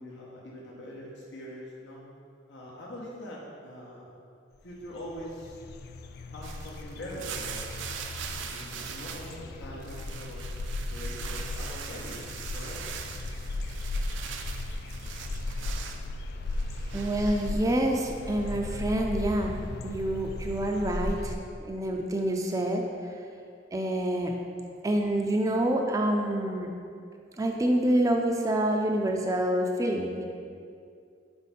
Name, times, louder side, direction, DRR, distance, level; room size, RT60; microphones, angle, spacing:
voice 1, 0.0-2.0 2.5-4.1 4.6-5.6 6.3-7.7 8.1-10.4 10.9-12.8, equal, 75° left, -5 dB, 0.8 m, -43 dB
sound 1, 4.6-4.7 4.8-21.4, left 2 dB, 55° left, 0.3 m, -36 dB
sound 2, 6.4-9.4 9.7-16.1 16.5-17.5, right 7 dB, 85° right, 0.4 m, -41 dB
voice 2, 16.9-21.3 21.6-22.9 23.7-24.4 24.8-26.7 27.4-30.3, right 1 dB, 20° right, 2 dB, 0.3 m, -27 dB
5.1 x 4.4 x 4.1 m, 2.4 s
head